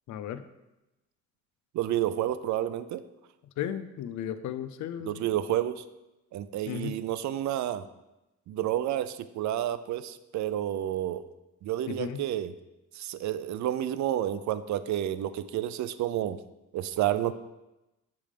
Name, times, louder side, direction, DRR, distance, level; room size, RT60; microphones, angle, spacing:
voice 1, 0.1-0.4 3.6-5.2 6.7-6.9 11.9-12.2, left 9 dB, 70° left, 11 dB, 0.5 m, -35 dB
voice 2, 1.7-3.0 5.0-5.8 6.3-7.9 8.5-11.2 11.6-12.5 12.9-16.4 16.7-17.3, right 12 dB, 70° right, 14 dB, 0.5 m, -30 dB
7.3 x 3.5 x 5.0 m, 0.98 s
cardioid pair, 90°, 30 cm